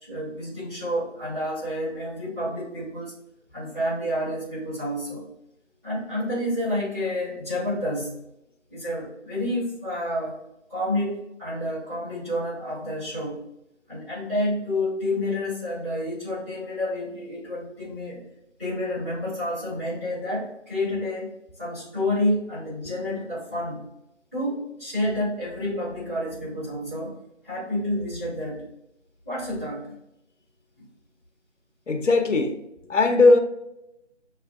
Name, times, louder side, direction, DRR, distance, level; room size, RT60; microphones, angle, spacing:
voice 1, 0.0-3.1 3.5-5.3 5.8-8.2 8.7-10.4 10.7-13.4 13.9-18.2 18.6-21.3 21.6-23.9 24.3-27.2 27.4-28.7 29.2-29.9 30.8-30.9, left 1 dB, 10° right, 1.6 m, -29 dB
voice 2, 31.9-32.5 32.9-33.4, left 3 dB, 80° left, 0.9 m, -18 dB
6.7 x 3.2 x 2.4 m
figure-of-eight pair, 180°, 36 cm